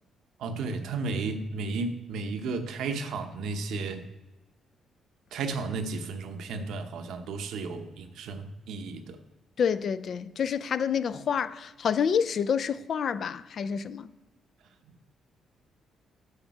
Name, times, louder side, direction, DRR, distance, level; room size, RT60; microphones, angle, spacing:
voice 1, 0.4-4.1 5.3-9.2, right 4 dB, 80° right, 0.8 m, -33 dB
voice 2, 9.6-14.1, left 7 dB, 55° left, 0.4 m, -28 dB
8.1 x 5.3 x 4.7 m
cardioid pair, 90°, 0 cm